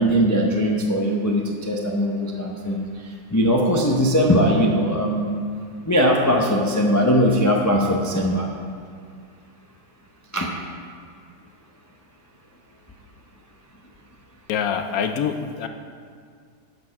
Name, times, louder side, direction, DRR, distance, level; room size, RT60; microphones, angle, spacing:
voice 1, 0.0-2.8 3.3-5.3 5.9-8.5 10.3-10.5, equal, 25° left, -1 dB, 0.4 m, -20 dB
voice 2, 14.5-15.7, left 7 dB, 70° left, 7 dB, 0.9 m, -25 dB
10.0 x 6.5 x 5.8 m, 2.2 s
omnidirectional pair, 1.8 m